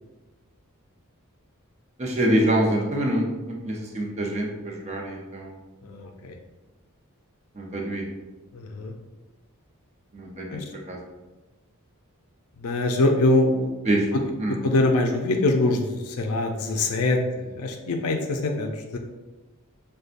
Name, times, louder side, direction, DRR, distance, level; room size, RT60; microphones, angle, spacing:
voice 1, 2.0-5.6 7.6-8.0 10.1-10.6 10.9-11.0 13.9-14.0 14.4-14.6, right 1 dB, 30° right, -1 dB, 0.6 m, -25 dB
voice 2, 5.8-6.3 8.5-8.9 10.5-10.6 12.6-13.7 14.1-14.3 14.6-19.0, left 2 dB, 75° left, 3 dB, 0.4 m, -24 dB
6.5 x 2.2 x 2.5 m, 1.2 s
head